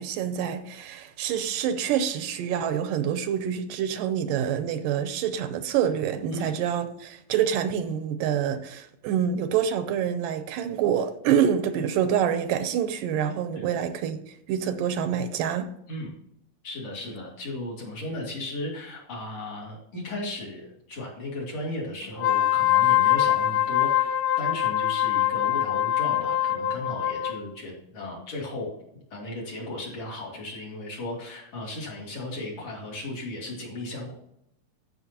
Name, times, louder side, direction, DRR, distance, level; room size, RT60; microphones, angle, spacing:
voice 1, 0.0-15.7, right 8 dB, 80° right, 10 dB, 2.2 m, -26 dB
voice 2, 16.6-28.7 29.1-34.1, left 1 dB, 50° left, -3 dB, 3.6 m, -35 dB
Wind instrument woodwind instrument, 22.1-27.4, left 12 dB, 80° left, 2.3 m, -23 dB
14.5 x 6.2 x 2.8 m, 0.77 s
omnidirectional pair, 4.0 m